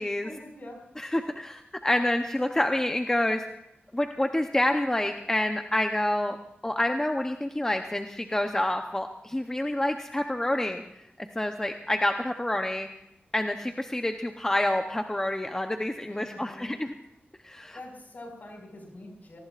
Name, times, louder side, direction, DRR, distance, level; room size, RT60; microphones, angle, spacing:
voice 1, 0.2-0.8 16.1-16.8 17.7-19.4, left 1 dB, 50° left, 1 dB, 5.3 m, -44 dB
voice 2, 1.0-3.4 3.9-6.4 6.6-10.8 11.2-12.9 13.3-16.9 17.4-17.8, left 1 dB, 15° left, 5 dB, 0.8 m, -28 dB
26.0 x 19.0 x 2.5 m, 0.81 s
wide cardioid pair, 120°, 4 cm